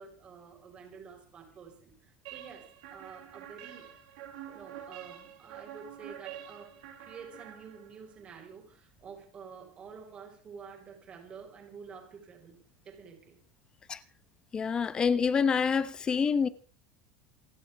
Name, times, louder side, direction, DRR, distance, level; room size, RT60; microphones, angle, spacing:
voice 1, 0.0-2.7 2.9-3.9 4.4-12.6 12.9-13.4, right 6 dB, 25° right, 5.1 m, -49 dB
sound 1, 2.3-8.1, right 10 dB, 75° right, 4.5 m, -47 dB
voice 2, 14.5-16.5, left 6 dB, 20° left, 1.0 m, -27 dB
28.5 x 11.5 x 3.5 m
supercardioid pair, 165°, 5 cm